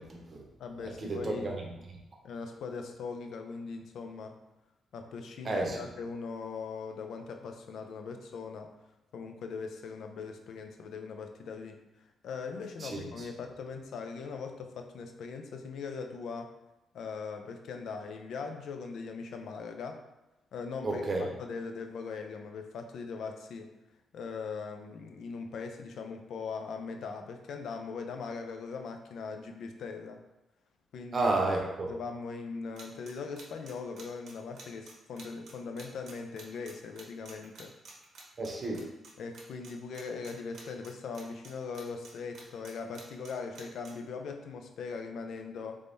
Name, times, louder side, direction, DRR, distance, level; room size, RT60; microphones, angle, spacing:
voice 1, 0.0-0.4 0.8-2.0 5.4-5.8 12.8-13.3 20.8-21.2 31.1-32.0 38.4-38.8, right 2 dB, 35° right, -1 dB, 0.7 m, -32 dB
voice 2, 0.6-1.5 2.2-4.4 4.9-8.7 9.1-11.8 12.2-16.5 16.9-20.0 20.5-21.0 21.4-23.7 24.1-30.2 30.9-31.3 31.9-37.7 39.2-45.8, left 5 dB, 70° left, 5 dB, 0.4 m, -40 dB
sound 1, 32.8-39.1 39.3-39.7 39.9-41.5 41.7-43.9, right 4 dB, 65° right, 0.8 m, -50 dB
3.5 x 3.3 x 2.6 m, 0.95 s
cardioid pair, 140°, 0 cm